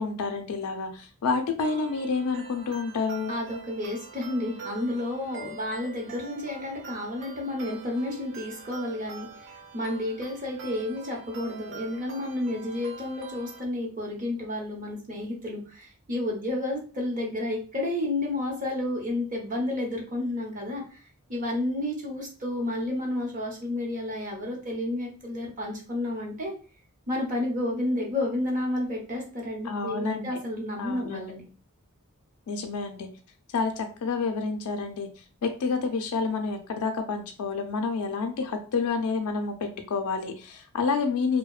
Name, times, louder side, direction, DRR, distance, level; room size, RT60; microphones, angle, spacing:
voice 1, 0.0-3.3 29.6-30.3 30.8-31.3 32.5-33.1 33.5-35.1 35.4-41.4, left 4 dB, 80° left, 5 dB, 0.4 m, -29 dB
sound 1, 1.6-13.6, right 5 dB, 60° right, 0.4 m, -44 dB
voice 2, 3.3-9.5 9.7-21.0 21.3-26.5 27.1-31.4, left 1 dB, 40° right, -1 dB, 0.8 m, -31 dB
2.7 x 2.1 x 2.3 m, 0.36 s
head